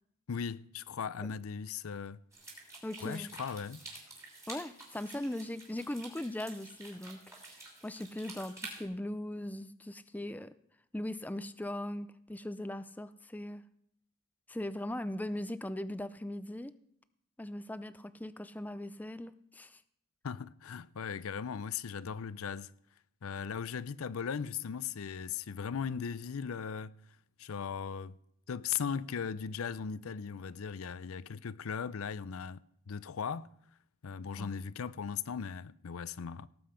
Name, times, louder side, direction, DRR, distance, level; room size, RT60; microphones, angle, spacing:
voice 1, 0.3-2.2 3.0-3.8 20.2-22.7 23.2-27.0 27.4-28.2 28.5-32.6 32.9-33.5 34.0-36.5, left 6 dB, 85° left, 0.5 m, -38 dB
sound 1, 2.3-8.8, right 2 dB, 15° right, 3.1 m, -49 dB
voice 2, 2.8-3.3 4.5-10.5 10.9-13.6 14.5-16.7 17.4-19.8 34.4-34.5, left 1 dB, 10° left, 0.4 m, -39 dB
18.0 x 7.8 x 5.0 m
head